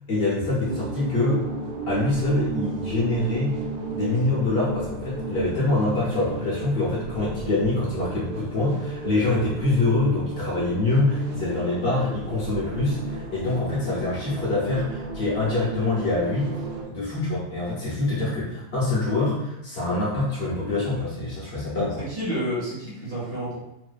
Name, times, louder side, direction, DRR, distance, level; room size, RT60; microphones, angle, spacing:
voice 1, 0.1-1.5 1.9-3.6 3.9-16.5 16.9-22.0, left 2 dB, 55° left, -7 dB, 0.9 m, -25 dB
sound 1, 0.6-16.8, right 3 dB, 90° right, 0.4 m, -34 dB
voice 2, 22.0-23.6, equal, 50° right, -8 dB, 1.1 m, -30 dB
2.6 x 2.2 x 2.3 m, 0.86 s
omnidirectional pair, 1.4 m